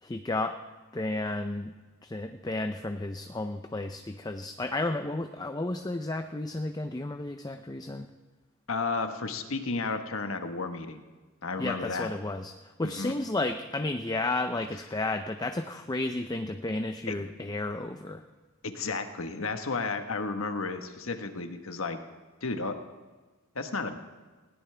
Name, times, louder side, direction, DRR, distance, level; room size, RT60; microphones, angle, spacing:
voice 1, 0.0-0.6 0.9-1.7 2.0-8.1 11.6-18.2, left 2 dB, 20° left, 7 dB, 0.6 m, -32 dB
voice 2, 8.7-11.0 11.4-12.1 12.8-13.1 17.1-17.2 18.6-22.0 22.4-22.8 23.5-24.0, left 3 dB, 70° left, 6 dB, 1.3 m, -32 dB
19.5 x 17.5 x 3.4 m, 1.3 s
head